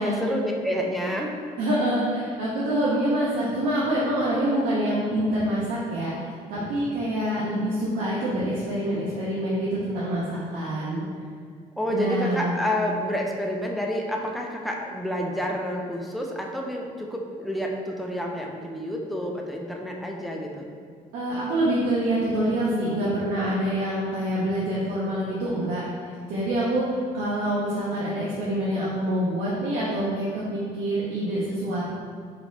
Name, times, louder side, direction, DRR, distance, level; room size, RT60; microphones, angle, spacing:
voice 1, 0.0-1.3 11.8-20.7, equal, ahead, 0 dB, 0.5 m, -29 dB
voice 2, 1.6-11.2 11.9-12.5 21.1-25.8 26.3-31.9, right 1 dB, 90° right, -7 dB, 0.7 m, -26 dB
3.3 x 3.0 x 3.8 m, 2.1 s
cardioid pair, 100°, 16 cm